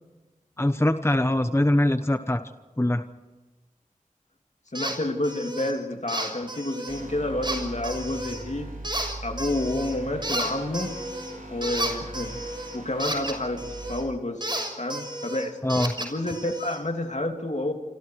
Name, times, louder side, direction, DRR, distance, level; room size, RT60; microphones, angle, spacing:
voice 1, 0.6-2.4 2.8-3.0 15.6-15.9, left 1 dB, 20° left, 9 dB, 1.1 m, -22 dB
voice 2, 4.7-8.7 9.2-11.0 11.4-12.3 12.7-13.6 13.9-14.4 14.8-15.6 16.0-17.7, left 1 dB, 60° left, 4 dB, 2.9 m, -29 dB
sound 1, 4.7-5.0 5.2-5.7 6.1-7.0 7.4-8.4 8.8-10.0 10.2-14.0 14.4-16.8, right 1 dB, 35° right, 6.2 m, -32 dB
sound 2, 6.9-14.0, right 2 dB, 80° right, 4.7 m, -40 dB
27.5 x 27.0 x 4.8 m, 1.2 s
wide cardioid pair, 40°, 14 cm